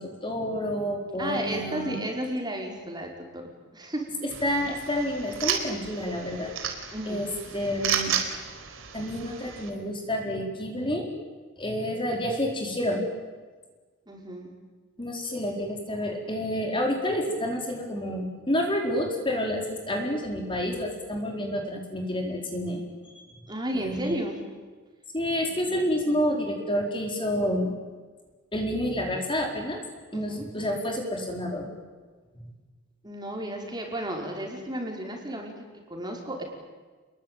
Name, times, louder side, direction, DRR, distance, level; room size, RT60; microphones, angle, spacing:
voice 1, 0.0-2.0 4.4-6.5 7.1-8.2 8.9-11.1 11.6-13.1 15.0-22.8 23.1-23.4 23.7-24.2 25.1-27.8 28.5-29.8 30.1-31.7, equal, 25° left, 2 dB, 4.5 m, -29 dB
voice 2, 1.2-4.1 6.9-7.2 14.1-14.5 23.5-24.4 25.3-25.8 30.1-30.5 33.0-36.4, right 1 dB, 20° right, 1 dB, 5.2 m, -33 dB
sound 1, 4.3-9.7, right 7 dB, 80° right, 4.2 m, -33 dB
29.5 x 21.5 x 9.3 m, 1.4 s
head